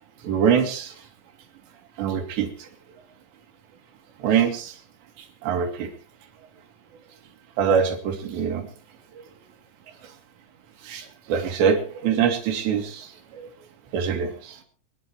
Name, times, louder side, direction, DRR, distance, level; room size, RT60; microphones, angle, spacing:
voice 1, 0.2-0.9 2.0-2.5 4.2-4.7 5.4-5.9 7.6-8.7 10.8-13.1 13.4-13.5 13.9-14.6, right 7 dB, 75° right, 5 dB, 4.3 m, -23 dB
28.0 x 10.5 x 3.2 m, 0.41 s
omnidirectional pair, 5.1 m